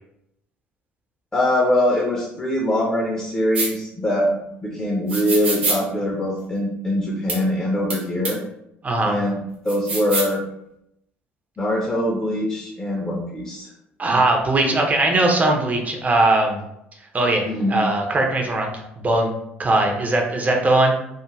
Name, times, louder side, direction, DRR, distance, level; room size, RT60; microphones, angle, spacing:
voice 1, 1.3-8.4 9.0-10.4 11.6-13.7 17.4-17.8, left 1 dB, 15° left, -2 dB, 0.6 m, -23 dB
sound 1, 3.5-3.7 5.1-5.8 7.3-7.4 7.9-8.0 8.2-8.3 9.7-10.3, right 3 dB, 80° right, 0.6 m, -24 dB
voice 2, 8.8-9.2 14.0-16.6 17.1-19.3 19.6-21.0, right 2 dB, 25° right, 2 dB, 0.6 m, -20 dB
2.4 x 2.4 x 3.0 m, 0.80 s
figure-of-eight pair, 55°, 6 cm